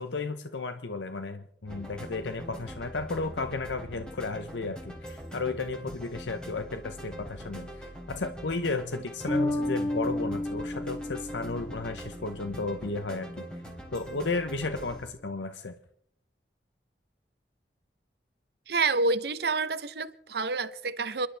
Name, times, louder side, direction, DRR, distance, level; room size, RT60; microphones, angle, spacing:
voice 1, 0.0-13.4 13.9-15.7, left 3 dB, 85° left, 0.9 m, -34 dB
sound 1, 1.7-15.1, equal, 5° left, 3.3 m, -43 dB
Bass guitar, 9.3-12.3, left 1 dB, 20° left, 2.2 m, -31 dB
voice 2, 18.7-21.3, right 3 dB, 60° right, 0.8 m, -28 dB
28.5 x 12.0 x 3.4 m
head